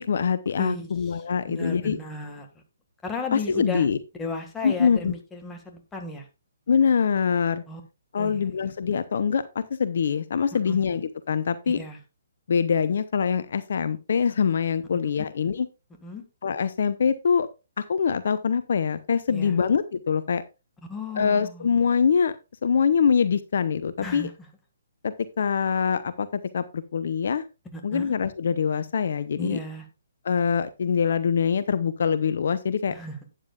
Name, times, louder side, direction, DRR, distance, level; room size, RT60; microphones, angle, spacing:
voice 1, 0.0-2.0 3.3-4.0 4.6-5.1 6.7-7.6 8.1-11.8 12.5-15.7 16.4-17.5 17.8-20.4 21.2-22.3 22.6-24.3 25.0-27.4 27.8-29.6 30.2-32.9, left 6 dB, 60° left, 14 dB, 0.7 m, -24 dB
voice 2, 0.6-2.5 3.0-3.9 4.2-6.3 7.7-7.8 8.2-8.7 10.5-10.8 11.7-12.0 15.0-15.3 16.0-16.2 19.3-19.7 20.9-21.7 24.0-24.5 27.7-28.2 29.4-29.9 32.9-33.2, left 3 dB, 10° left, 3 dB, 1.8 m, -35 dB
12.0 x 9.1 x 2.4 m, 0.28 s
figure-of-eight pair, 135°, 0 cm